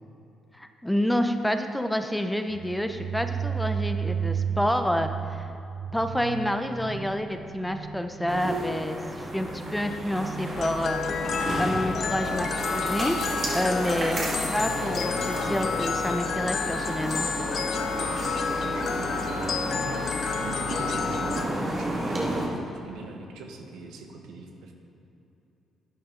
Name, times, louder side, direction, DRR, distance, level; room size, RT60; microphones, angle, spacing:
voice 1, 0.5-5.5 5.9-9.0 9.3-11.0 11.6-13.2 13.5-14.2 14.5-17.3, equal, 5° left, 7 dB, 0.6 m, -28 dB
sound 1, 2.5-14.0, right 7 dB, 65° right, 0.6 m, -35 dB
sound 2, 8.3-22.5, right 1 dB, 40° right, 2.0 m, -32 dB
sound 3, 10.5-21.5, left 6 dB, 55° left, 0.7 m, -30 dB
voice 2, 12.1-12.5 13.0-13.3 18.7-19.6 20.4-24.7, right 3 dB, 90° right, 3 dB, 1.1 m, -42 dB
11.5 x 9.2 x 3.8 m, 2.9 s
cardioid pair, 90°, 0 cm